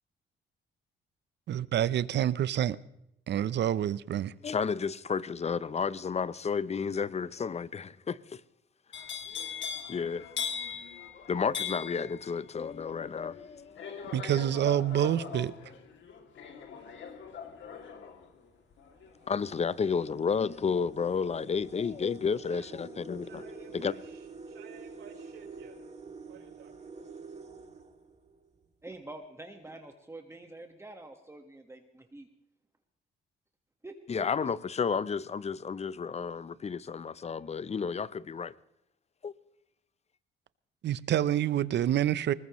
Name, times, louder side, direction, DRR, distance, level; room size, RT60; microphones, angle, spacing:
voice 1, 1.5-2.8 3.3-4.3 14.1-15.5 40.8-42.3, right 11 dB, 60° right, 0.7 m, -27 dB
voice 2, 4.4-8.4 9.9-10.3 11.3-14.3 19.3-23.4 23.7-23.9 34.1-38.5 39.2-39.3, left 6 dB, 35° left, 0.7 m, -32 dB
sound 1, 8.9-20.9 21.2-21.7, left 7 dB, 70° left, 2.6 m, -41 dB
sound 2, 17.2-17.5 18.3-18.4 18.8-28.6, right 4 dB, 35° right, 2.7 m, -48 dB
voice 3, 22.5-22.8 23.2-25.8 26.3-27.1, right 6 dB, 85° right, 4.6 m, -54 dB
voice 4, 28.8-32.3 33.8-34.5, right 2 dB, 15° right, 1.5 m, -47 dB
21.0 x 19.5 x 3.1 m
cardioid pair, 90°, 20 cm